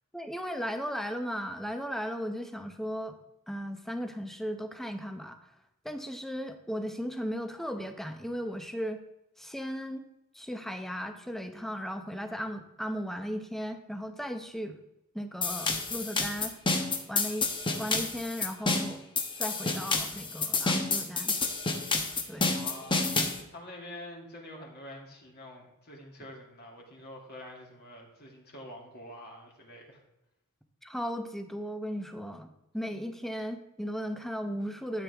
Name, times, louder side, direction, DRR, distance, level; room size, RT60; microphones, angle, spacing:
voice 1, 0.1-3.2 3.5-5.4 5.8-9.0 9.4-10.0 10.3-14.8 15.1-16.5 17.1-17.5 17.8-19.0 19.4-21.4 22.3-22.5 30.8-35.0, equal, ahead, 6 dB, 0.8 m, -36 dB
sound 1, 15.4-23.4, left 3 dB, 20° left, 1.1 m, -29 dB
voice 2, 22.4-23.1 23.5-30.0, left 1 dB, 50° left, -1 dB, 2.7 m, -46 dB
12.5 x 8.0 x 3.5 m, 0.89 s
head